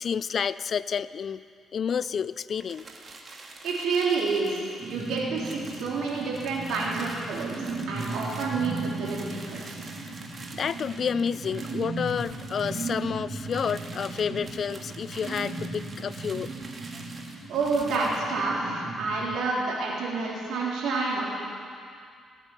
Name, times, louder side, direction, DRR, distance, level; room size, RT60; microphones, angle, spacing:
voice 1, 0.0-1.4 1.7-2.8 10.5-16.5 16.9-17.0, left 7 dB, 50° left, 17 dB, 0.4 m, -30 dB
sound 1, 2.5-18.3, right 3 dB, 40° right, 1.8 m, -46 dB
voice 2, 3.6-9.8 17.5-21.3, right 4 dB, 80° right, -5 dB, 3.9 m, -29 dB
sound 2, 4.8-19.2, right 3 dB, 55° right, 2.4 m, -37 dB
18.0 x 8.2 x 7.4 m, 2.3 s
cardioid pair, 90°, 0 cm